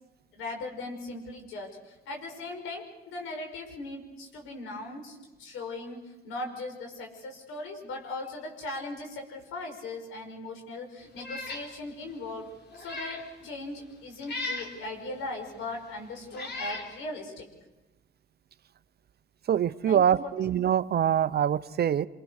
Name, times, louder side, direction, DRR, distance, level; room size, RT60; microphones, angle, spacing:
voice 1, 0.3-17.5 19.9-20.3, left 2 dB, 90° left, 3 dB, 5.7 m, -39 dB
Meow, 11.2-11.7 12.1-12.2 12.7-13.3 14.2-14.7 15.6-15.7 16.3-16.9, left 2 dB, 55° left, 4.6 m, -37 dB
voice 2, 19.5-22.1, right 9 dB, 55° right, 13 dB, 0.7 m, -24 dB
27.5 x 23.5 x 6.6 m, 1.1 s
cardioid pair, 90°, 20 cm